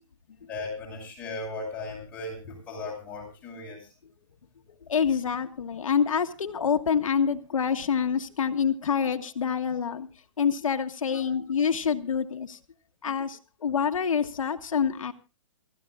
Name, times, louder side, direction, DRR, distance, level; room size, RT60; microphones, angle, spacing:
voice 1, 0.5-3.9 11.1-11.2, left 2 dB, 10° left, -4 dB, 7.5 m, -37 dB
voice 2, 4.9-10.1 10.4-12.6 13.0-15.1, left 7 dB, 85° left, 6 dB, 1.6 m, -26 dB
27.5 x 14.5 x 2.4 m, 0.29 s
hypercardioid pair, 165°, 17 cm